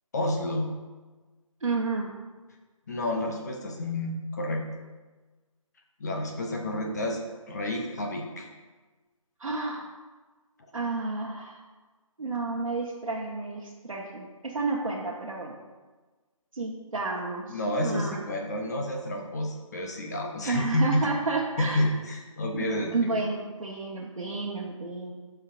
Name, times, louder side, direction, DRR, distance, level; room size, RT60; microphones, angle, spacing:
voice 1, 0.1-0.7 2.9-4.6 6.0-7.2 7.5-8.5 17.5-21.1 21.6-23.2, left 1 dB, 30° left, 2 dB, 0.7 m, -29 dB
voice 2, 1.6-2.1 9.4-9.9 10.7-11.6 12.2-15.5 16.5-18.2 20.4-21.8 22.5-25.1, right 3 dB, 70° right, -4 dB, 1.2 m, -31 dB
12.5 x 5.6 x 2.6 m, 1.3 s
figure-of-eight pair, 155°, 18 cm